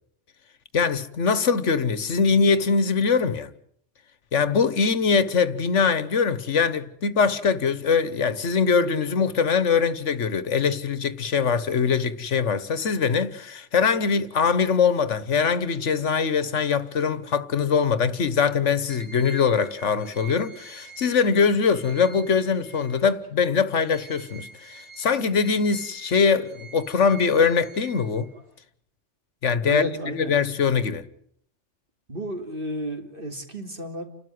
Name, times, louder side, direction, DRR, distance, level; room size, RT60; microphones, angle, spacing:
voice 1, 0.7-3.5 4.3-28.3 29.4-31.0, left 5 dB, 80° left, 1.5 m, -22 dB
sound 1, 18.9-23.3 23.7-28.6, right 4 dB, 65° right, 4.6 m, -47 dB
voice 2, 29.6-30.3 32.1-34.0, equal, 45° right, 3.3 m, -32 dB
30.0 x 12.5 x 9.6 m
omnidirectional pair, 1.2 m